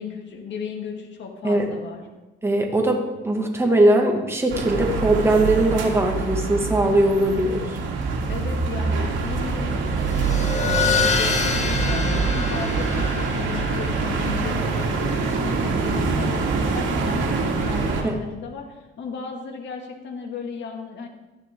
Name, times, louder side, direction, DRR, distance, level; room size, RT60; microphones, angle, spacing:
voice 1, 0.0-2.1 8.3-21.1, left 5 dB, 65° left, 1 dB, 2.2 m, -35 dB
voice 2, 2.4-7.8 18.0-18.2, right 1 dB, 10° right, 1 dB, 2.2 m, -20 dB
sound 1, 4.5-18.0, right 4 dB, 80° right, 2.3 m, -25 dB
sound 2, 9.9-17.0, left 4 dB, 35° left, 1.8 m, -28 dB
14.0 x 11.0 x 3.8 m, 1.1 s
cardioid pair, 90°, 20 cm